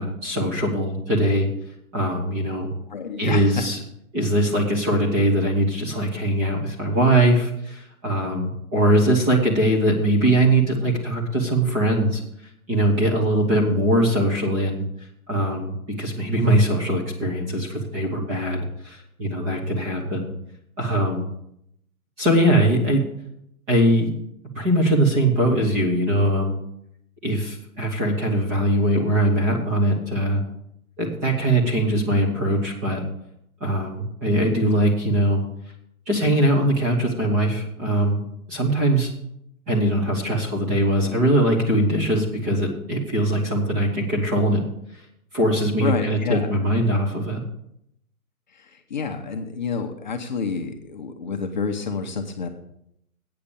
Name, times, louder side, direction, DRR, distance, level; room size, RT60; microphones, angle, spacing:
voice 1, 0.0-1.5 1.9-2.7 3.2-3.8 4.1-12.2 12.7-14.8 15.3-20.3 20.8-21.2 22.2-23.0 23.7-24.1 24.5-26.6 27.2-30.4 31.0-33.0 33.6-35.4 36.1-38.2 38.5-39.1 39.7-44.6 45.3-47.4, right 1 dB, 10° right, -1 dB, 0.8 m, -21 dB
voice 2, 2.9-3.7 45.8-46.5 48.5-52.5, left 5 dB, 30° left, 4 dB, 0.7 m, -29 dB
8.6 x 6.6 x 8.5 m, 0.76 s
hypercardioid pair, 160°, 45 cm